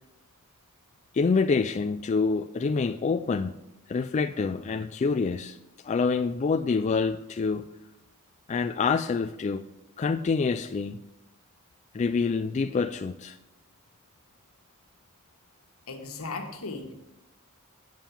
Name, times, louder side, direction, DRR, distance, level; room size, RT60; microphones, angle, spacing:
voice 1, 1.1-3.5 3.9-5.6 5.8-7.7 8.5-9.6 10.0-11.0 11.9-13.4, left 4 dB, 35° left, 0.3 m, -26 dB
voice 2, 15.9-16.9, left 3 dB, 75° left, 1.6 m, -36 dB
8.9 x 7.5 x 7.1 m
head